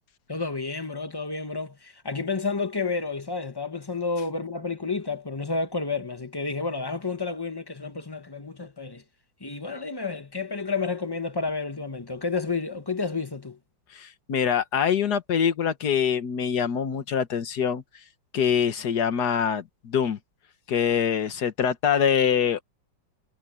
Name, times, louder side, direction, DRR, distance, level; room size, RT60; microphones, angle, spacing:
voice 1, 0.3-9.0 9.4-13.6, left 4 dB, 15° left, 0.8 m, -30 dB
voice 2, 13.9-17.8 18.3-20.2 20.7-22.6, left 8 dB, 55° left, 1.7 m, -24 dB
omnidirectional pair, 2.2 m